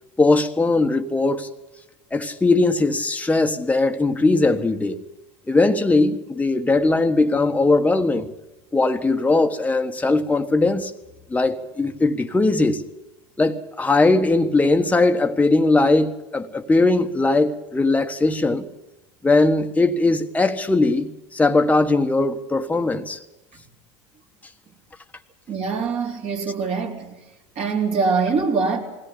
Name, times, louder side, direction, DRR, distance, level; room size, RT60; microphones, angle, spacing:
voice 1, 0.2-1.5 2.1-5.0 5.5-8.3 8.7-10.9 11.3-12.8 13.4-18.7 19.2-23.2, left 2 dB, 10° left, 1.3 m, -19 dB
voice 2, 25.5-27.1 27.6-28.8, right 5 dB, 45° right, 3.9 m, -23 dB
20.5 x 17.0 x 8.5 m
hypercardioid pair, 90°, 15 cm